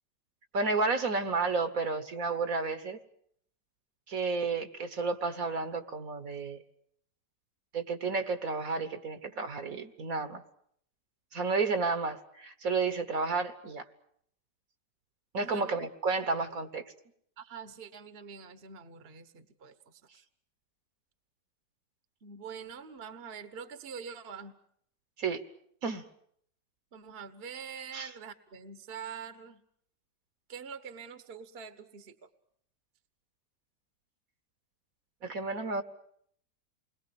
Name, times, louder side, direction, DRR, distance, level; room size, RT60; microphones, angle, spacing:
voice 1, 0.5-3.0 4.1-6.6 7.7-10.4 11.3-13.8 15.3-16.8 25.2-25.4 25.8-26.1 27.9-28.1 35.2-35.8, right 4 dB, 55° right, 9 dB, 1.7 m, -31 dB
voice 2, 15.4-15.7 17.4-20.2 22.2-24.6 26.9-29.6 30.5-32.3, right 6 dB, 40° right, 10 dB, 1.4 m, -45 dB
28.5 x 21.5 x 7.0 m, 0.67 s
omnidirectional pair, 1.9 m